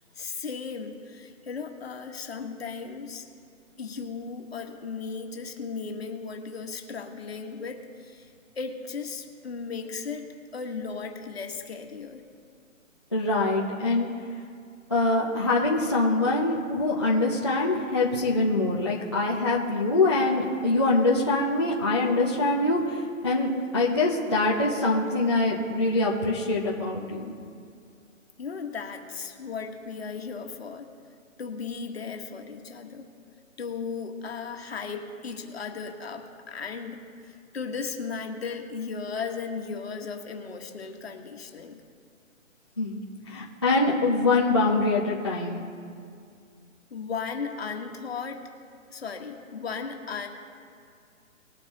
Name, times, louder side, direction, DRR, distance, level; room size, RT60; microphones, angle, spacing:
voice 1, 0.1-3.3 3.8-10.3 10.5-12.3 28.4-30.9 31.4-33.1 33.6-41.8 46.9-48.5 48.9-50.3, left 5 dB, 50° left, 3 dB, 1.5 m, -36 dB
voice 2, 13.1-14.1 14.9-27.3 42.8-45.6, left 2 dB, 20° left, -6 dB, 0.7 m, -24 dB
20.5 x 8.7 x 3.0 m, 2.3 s
hypercardioid pair, 175°, 40 cm